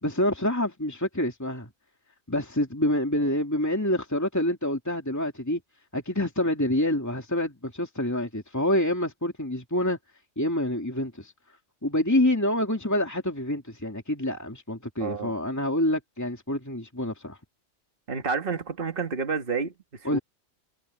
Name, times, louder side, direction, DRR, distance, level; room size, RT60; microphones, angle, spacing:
voice 1, 0.0-1.7 2.3-5.6 5.9-10.0 10.4-11.3 11.8-17.4 20.0-20.2, left 1 dB, 15° left, 2.6 m, -27 dB
voice 2, 15.0-15.3 18.1-19.7 20.1-20.2, right 5 dB, 50° right, 2.0 m, -29 dB
omnidirectional pair, 1.2 m